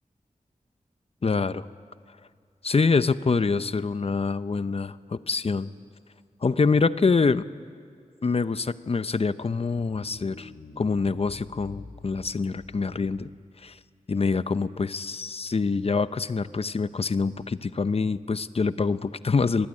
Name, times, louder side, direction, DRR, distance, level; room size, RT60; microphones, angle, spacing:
voice 1, 1.2-1.7 2.6-5.7 6.4-7.4 8.2-10.5 10.8-13.3 13.6-13.8 14.1-19.7, left 4 dB, 45° left, 14 dB, 0.8 m, -25 dB
sound 1, 9.4-13.7, left 3 dB, 75° left, 2.2 m, -48 dB
26.5 x 20.5 x 9.8 m, 2.2 s
wide cardioid pair, 75°, 14 cm